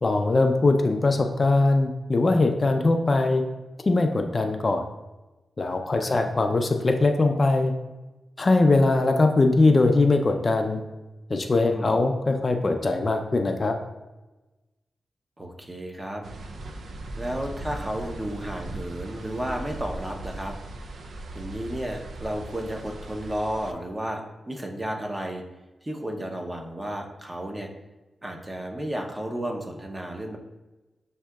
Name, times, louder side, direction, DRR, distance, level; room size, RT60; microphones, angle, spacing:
voice 1, 0.0-3.4 3.9-4.8 5.6-7.7 8.4-10.8 11.3-13.8, left 2 dB, 40° left, 5 dB, 0.4 m, -21 dB
voice 2, 11.6-11.9 15.4-16.2 17.2-20.5 21.1-25.4 25.8-27.7 28.2-30.4, right 1 dB, 20° right, 2 dB, 0.7 m, -33 dB
sound 1, 16.2-23.7, right 2 dB, 75° right, 0.4 m, -38 dB
7.2 x 2.7 x 2.3 m, 1.1 s
cardioid pair, 80°, 0 cm